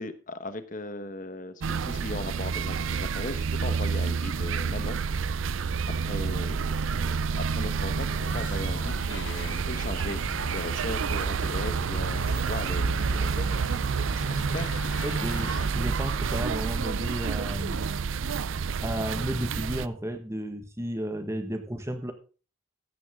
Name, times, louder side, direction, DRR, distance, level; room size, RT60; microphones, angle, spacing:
voice 1, 0.0-5.0 6.0-7.1 7.5-10.2 10.5-13.5 14.1-14.7, left 2 dB, 40° left, 11 dB, 1.1 m, -38 dB
sound 1, 1.6-19.9, right 5 dB, 80° right, 0.5 m, -29 dB
sound 2, 8.2-15.7, left 4 dB, 70° left, 0.8 m, -42 dB
voice 2, 15.0-17.8 18.8-22.1, equal, 15° right, 7 dB, 1.4 m, -33 dB
14.5 x 9.9 x 3.6 m, 0.35 s
head